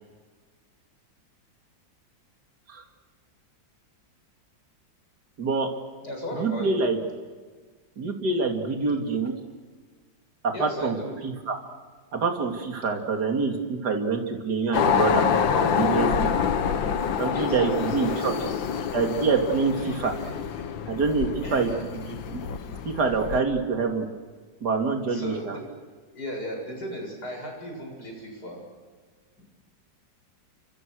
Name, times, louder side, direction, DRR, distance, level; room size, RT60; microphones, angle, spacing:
voice 1, 5.4-5.7 6.3-7.0 8.0-9.3 10.4-11.0 11.2-11.6 12.1-16.4 17.2-18.3 18.9-20.1 20.9-21.7 22.1-22.4 22.8-24.0 24.6-25.6, right 4 dB, 55° right, 3 dB, 3.2 m, -26 dB
voice 2, 6.0-6.8 10.5-11.1 17.3-18.7 19.8-20.3 21.4-21.8 25.1-25.6 26.1-28.6 29.4-29.5, equal, 55° left, 1 dB, 7.9 m, -36 dB
sound 1, 14.7-23.4, left 7 dB, 75° left, 2.0 m, -27 dB
29.5 x 25.5 x 6.4 m, 1.5 s
omnidirectional pair, 2.1 m